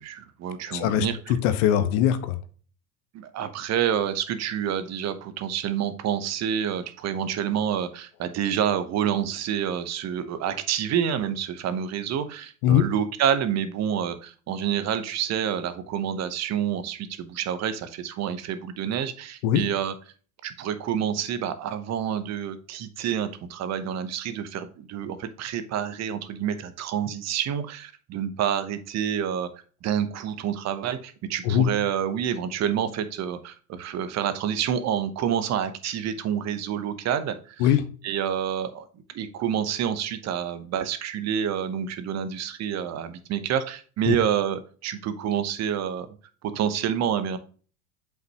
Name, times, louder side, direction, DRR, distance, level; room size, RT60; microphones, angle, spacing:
voice 1, 0.0-1.2 3.1-19.9 20.4-29.5 29.8-37.6 38.0-38.8 39.1-46.1 46.4-47.4, right 9 dB, 35° right, 11 dB, 1.0 m, -28 dB
voice 2, 0.7-2.4 12.6-12.9 19.4-19.6 31.4-31.7 37.6-37.8 44.1-44.2, left 10 dB, 55° left, 11 dB, 1.1 m, -21 dB
7.7 x 5.5 x 2.9 m, 0.40 s
hypercardioid pair, 90°, 45 cm